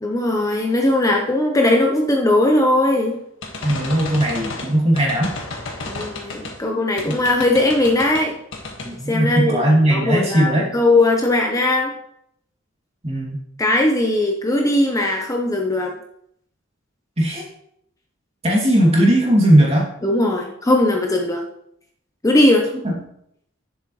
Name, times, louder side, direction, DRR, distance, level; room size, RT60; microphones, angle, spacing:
voice 1, 0.0-3.2 5.9-8.4 9.1-11.9 13.6-16.0 20.0-21.4 22.2-22.7, left 1 dB, 15° left, 1 dB, 0.8 m, -19 dB
sound 1, 3.4-6.6 7.0-8.3 8.5-8.9, left 2 dB, 65° left, 1.8 m, -32 dB
voice 2, 3.6-5.3 7.1-7.2 8.8-10.7 13.0-13.4 17.2-17.5 18.4-19.9 22.8-22.9, right 1 dB, 30° right, -2 dB, 2.6 m, -18 dB
10.5 x 7.1 x 3.2 m, 0.73 s
head